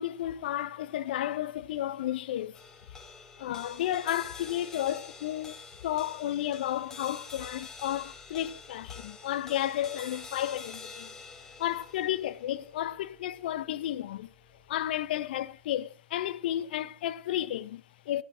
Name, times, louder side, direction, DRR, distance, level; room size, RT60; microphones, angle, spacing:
voice 1, 0.0-2.6 2.9-3.0 3.4-5.6 5.8-11.1 11.6-14.3 14.7-18.2, left 12 dB, 45° left, 1.3 m, -32 dB
sound 1, 2.5-15.0, left 4 dB, 5° left, 3.8 m, -47 dB
17.0 x 13.5 x 4.9 m
figure-of-eight pair, 120°, 7 cm